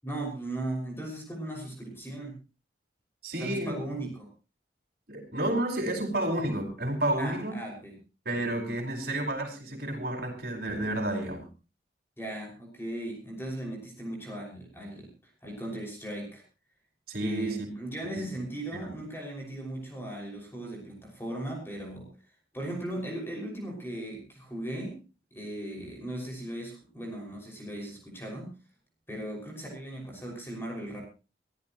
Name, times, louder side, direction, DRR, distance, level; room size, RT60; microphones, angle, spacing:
voice 1, 0.0-2.3 3.4-4.3 7.2-8.0 12.2-15.1 15.4-16.4 17.2-22.1 22.5-25.0 25.3-28.5 29.1-31.0, right 1 dB, 10° left, 0 dB, 5.8 m, -37 dB
voice 2, 3.2-3.8 5.1-7.5 8.2-11.4 17.1-17.7 18.0-18.2 18.8-18.9, right 1 dB, 55° right, 3 dB, 4.7 m, -31 dB
23.0 x 15.0 x 3.0 m, 0.32 s
head